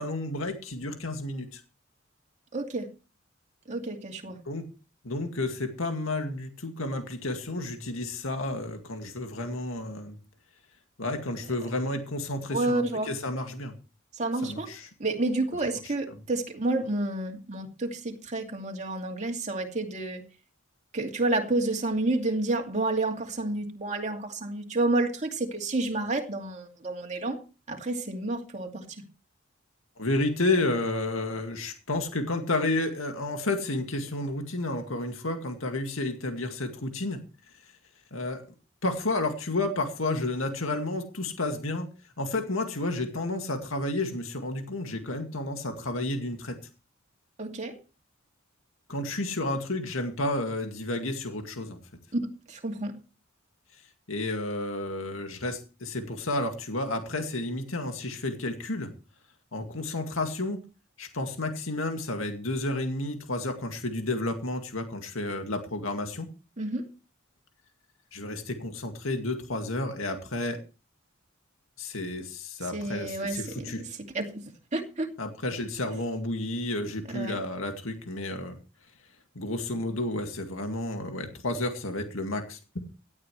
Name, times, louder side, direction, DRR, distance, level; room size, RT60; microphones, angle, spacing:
voice 1, 0.0-1.6 4.5-4.6 5.0-10.2 11.0-13.7 14.4-14.9 15.8-15.9 30.0-37.2 38.1-38.4 38.8-41.9 42.2-46.6 48.9-51.8 54.1-58.9 59.5-60.6 61.0-66.3 68.1-70.6 71.8-73.8 75.2-78.6 79.4-82.9, left 2 dB, 90° left, 2.1 m, -31 dB
voice 2, 2.5-2.9 3.7-4.4 12.5-13.1 14.2-14.7 15.0-20.2 20.9-27.4 27.7-29.0 47.4-47.8 52.1-52.9 66.6-66.9 72.7-75.1 77.1-77.4, right 2 dB, 35° right, 2.5 m, -30 dB
17.0 x 12.0 x 3.2 m
head